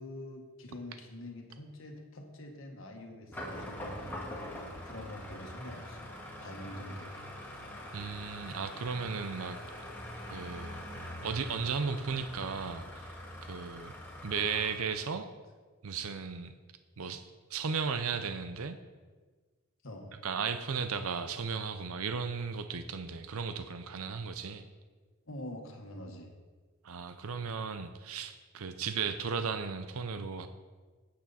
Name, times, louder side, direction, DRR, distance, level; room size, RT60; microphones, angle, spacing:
voice 1, 0.0-6.1 6.4-7.1 19.8-20.1 25.3-26.3, left 1 dB, 60° left, 2 dB, 1.7 m, -45 dB
sound 1, 3.3-14.7, left 1 dB, 10° left, 1.8 m, -44 dB
voice 2, 7.9-9.6 10.3-10.8 11.2-13.9 14.2-15.3 15.8-16.5 17.0-17.2 17.5-18.8 20.2-24.7 26.8-30.5, right 5 dB, 75° right, 9 dB, 0.6 m, -35 dB
12.5 x 8.6 x 4.2 m, 1.4 s
head